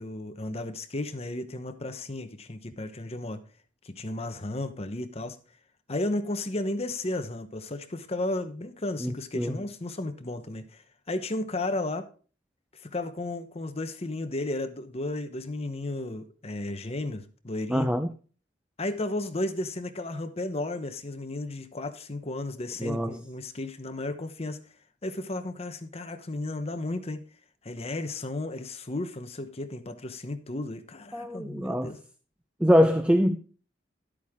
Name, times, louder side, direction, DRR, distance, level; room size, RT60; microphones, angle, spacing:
voice 1, 0.0-3.4 3.8-5.4 5.9-12.1 12.7-17.9 18.8-24.6 25.0-27.2 27.6-32.0, left 2 dB, 35° left, 1.0 m, -34 dB
voice 2, 9.0-9.6 17.7-18.1 22.8-23.2 31.1-31.9 32.6-33.4, equal, 5° right, 0.5 m, -24 dB
11.5 x 8.3 x 3.6 m
head